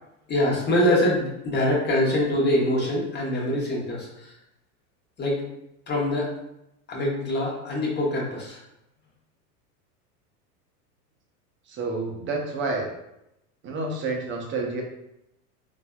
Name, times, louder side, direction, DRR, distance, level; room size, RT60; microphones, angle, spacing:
voice 1, 0.3-4.1 5.2-5.4 5.9-6.3 6.9-8.6, left 1 dB, 20° left, -3 dB, 0.9 m, -24 dB
voice 2, 11.7-12.9 13.6-14.8, right 3 dB, 25° right, 1 dB, 0.6 m, -29 dB
4.3 x 2.0 x 2.3 m, 0.85 s
hypercardioid pair, 100°, 46 cm